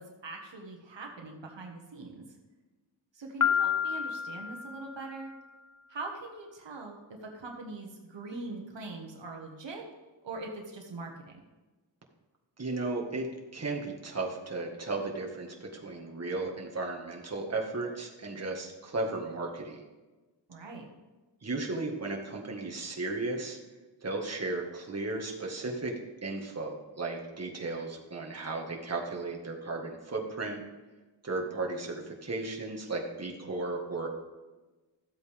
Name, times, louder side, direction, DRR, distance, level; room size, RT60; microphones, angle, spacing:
voice 1, 0.0-2.2 3.1-5.3 5.9-9.9 10.2-11.3 20.5-20.9, right 3 dB, 80° right, 1 dB, 1.6 m, -42 dB
Piano, 3.4-5.3, left 8 dB, 45° left, 0.7 m, -30 dB
voice 2, 12.6-13.3 13.5-19.8 21.4-23.6 24.0-25.9 26.2-30.6 31.2-34.1, right 3 dB, 35° right, 0 dB, 1.7 m, -35 dB
13.5 x 8.1 x 3.5 m, 1.2 s
wide cardioid pair, 75°, 43 cm